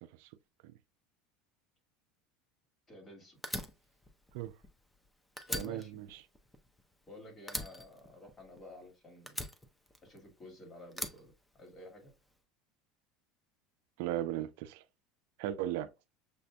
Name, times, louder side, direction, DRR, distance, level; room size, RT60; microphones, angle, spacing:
voice 1, 2.9-3.7 5.5-6.0 7.1-9.4 10.0-12.1, left 1 dB, 30° left, 2.0 m, -52 dB
Fire, 3.4-5.1 5.4-7.1 7.5-8.8 9.3-10.4 10.9-12.1, left 1 dB, 10° left, 0.7 m, -41 dB
voice 2, 5.5-6.1 14.0-14.8 15.4-15.9, right 13 dB, 75° right, 0.3 m, -36 dB
6.6 x 2.6 x 2.2 m
supercardioid pair, 110°, 0 cm